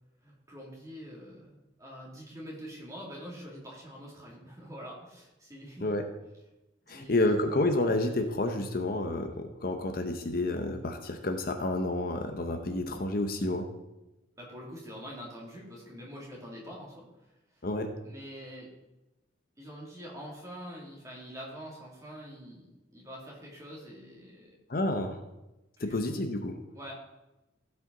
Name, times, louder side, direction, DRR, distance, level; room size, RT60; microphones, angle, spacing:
voice 1, 0.2-5.9 6.9-7.2 14.4-17.0 17.5-17.6 18.0-18.7 19.6-24.5 25.8-26.0 26.7-26.9, equal, 20° right, -4 dB, 2.7 m, -45 dB
voice 2, 6.9-13.7 17.6-17.9 24.7-25.2 25.8-26.6, left 2 dB, 50° left, 6 dB, 0.9 m, -29 dB
16.0 x 5.7 x 4.0 m, 0.99 s
head